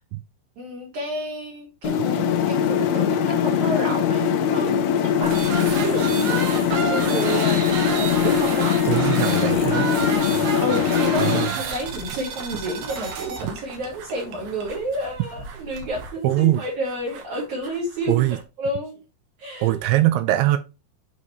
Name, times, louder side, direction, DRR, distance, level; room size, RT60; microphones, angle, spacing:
voice 1, 0.6-4.7 5.0-9.8 10.6-19.0 19.4-19.8, right 1 dB, 50° right, 2.6 m, -30 dB
sound 1, 1.8-11.5, left 8 dB, 75° left, 3.0 m, -21 dB
sound 2, 5.2-18.4, right 6 dB, 65° right, 2.7 m, -32 dB
voice 2, 8.9-9.9 10.3-10.5 11.2-11.6 16.2-16.6 18.1-18.4 19.6-20.6, right 15 dB, 80° right, 2.7 m, -21 dB
8.4 x 4.9 x 3.1 m
omnidirectional pair, 5.7 m